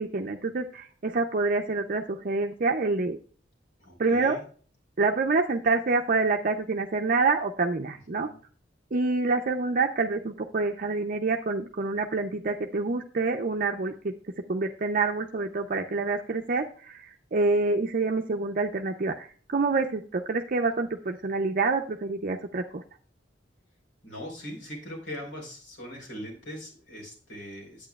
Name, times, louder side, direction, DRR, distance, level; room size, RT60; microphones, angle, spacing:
voice 1, 0.0-3.2 4.0-4.4 5.0-8.3 8.9-14.1 14.5-17.0 17.3-22.8, right 3 dB, 50° right, 3 dB, 0.6 m, -27 dB
voice 2, 3.8-4.4 8.1-8.4 24.0-27.9, equal, 80° left, 0 dB, 4.3 m, -41 dB
9.0 x 8.6 x 2.3 m, 0.43 s
head